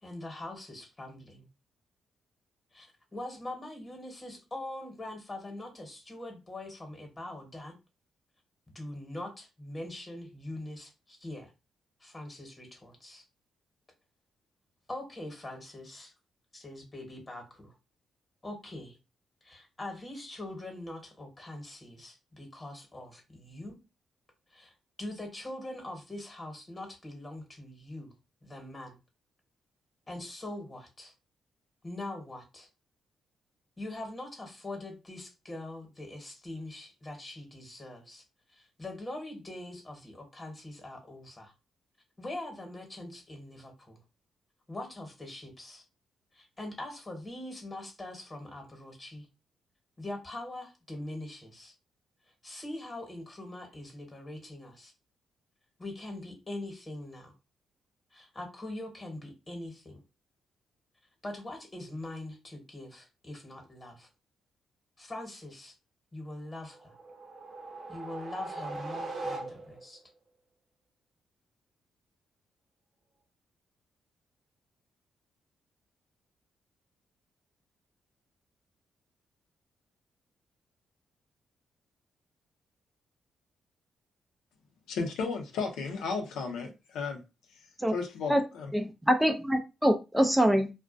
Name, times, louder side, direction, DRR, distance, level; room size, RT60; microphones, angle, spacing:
voice 1, 0.0-1.5 2.7-7.8 8.7-11.5 12.0-13.2 14.9-16.1 16.5-17.7 18.4-19.0 19.4-23.8 24.5-24.7 25.0-28.1 28.4-29.0 30.1-31.1 31.8-32.7 33.8-38.2 38.5-41.5 42.2-44.0 44.7-45.8 46.3-49.3 50.0-51.7 52.4-54.9 55.8-57.3 58.1-60.0 61.2-64.1 65.0-65.7 66.1-67.0 67.9-70.0, left 1 dB, 25° left, 1.0 m, -42 dB
sound 1, 66.7-70.0, right 3 dB, 55° right, 0.7 m, -40 dB
voice 2, 84.9-87.2 87.9-88.7, left 4 dB, 90° left, 0.5 m, -34 dB
voice 3, 88.7-90.7, equal, 10° right, 0.3 m, -25 dB
2.3 x 2.1 x 2.4 m
cardioid pair, 75°, 0 cm